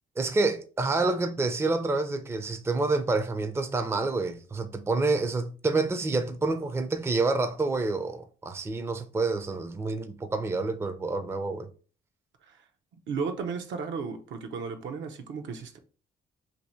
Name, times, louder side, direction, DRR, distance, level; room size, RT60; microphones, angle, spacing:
voice 1, 0.2-11.7, right 3 dB, 15° right, 0.4 m, -28 dB
voice 2, 13.1-15.8, right 5 dB, 70° right, 0.7 m, -34 dB
2.7 x 2.6 x 4.3 m
cardioid pair, 90°, 20 cm